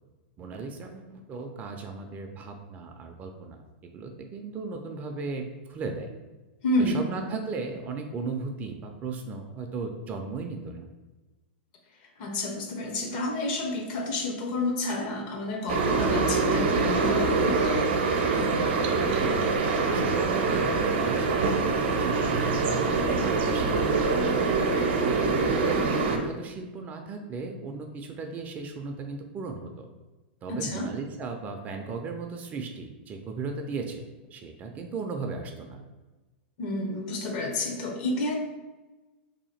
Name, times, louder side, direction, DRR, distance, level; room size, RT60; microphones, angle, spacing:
voice 1, 0.4-3.6 3.9-6.1 6.8-10.9 19.1-19.4 19.8-21.6 22.0-22.6 23.2-23.9 24.8-29.9 30.4-34.0 34.3-35.8, right 4 dB, 25° right, 4 dB, 0.4 m, -36 dB
voice 2, 6.6-7.0 12.2-17.8 30.5-30.9 36.6-38.3, left 2 dB, 50° left, 2 dB, 0.8 m, -29 dB
sound 1, 15.7-26.2, right 4 dB, 70° right, 0.6 m, -24 dB
2.8 x 2.5 x 4.2 m, 1.2 s
hypercardioid pair, 135°, 6 cm